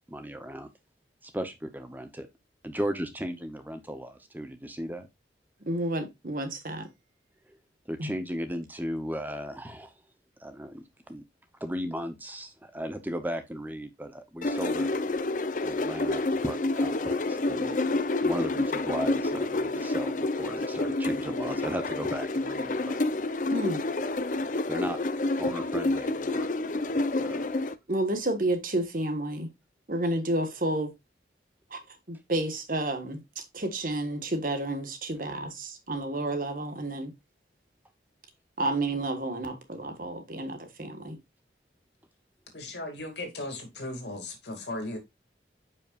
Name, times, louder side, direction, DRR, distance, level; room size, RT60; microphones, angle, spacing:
voice 1, 0.1-0.7 1.2-2.3 2.6-5.1 7.9-9.9 10.4-11.2 11.6-14.9 15.6-17.8 18.2-23.0 24.7-25.0 25.4-26.5 27.2-27.4, equal, 10° right, 0.7 m, -36 dB
voice 2, 5.7-6.9 8.0-8.1 23.5-23.8 27.9-29.5 29.9-30.9 31.7-37.1 38.6-41.2, right 1 dB, 50° right, 1.5 m, -31 dB
sound 1, 14.4-27.7, left 2 dB, 45° left, 0.5 m, -29 dB
voice 3, 42.5-45.0, left 1 dB, 80° left, 2.4 m, -37 dB
9.1 x 5.5 x 2.4 m
head